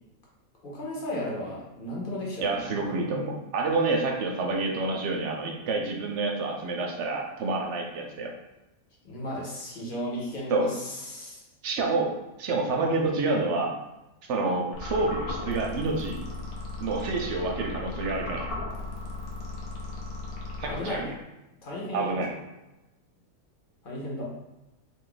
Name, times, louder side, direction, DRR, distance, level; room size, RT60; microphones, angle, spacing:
voice 1, 0.6-2.8 9.0-11.4 20.6-21.1 21.6-22.2 23.8-24.2, left 1 dB, 45° left, -4 dB, 0.8 m, -35 dB
voice 2, 2.4-8.3 10.5-10.7 11.6-12.1 12.4-13.7 14.3-16.2 16.8-18.5 20.6-21.1 21.9-22.3, right 3 dB, 65° right, 1 dB, 0.8 m, -28 dB
sound 1, 14.7-21.2, left 2 dB, 90° left, 1.1 m, -36 dB
2.6 x 2.5 x 3.8 m, 0.99 s
omnidirectional pair, 1.5 m